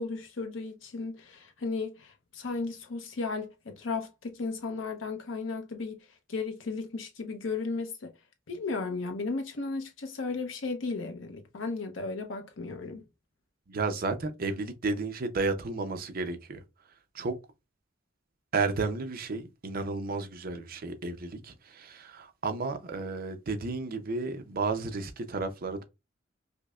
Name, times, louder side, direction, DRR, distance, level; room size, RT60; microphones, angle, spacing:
voice 1, 0.0-8.1 8.5-13.1, left 3 dB, 80° left, 0.7 m, -35 dB
voice 2, 13.7-16.6 17.1-17.4 18.5-25.8, right 3 dB, 50° right, 0.6 m, -32 dB
5.1 x 2.1 x 2.3 m
head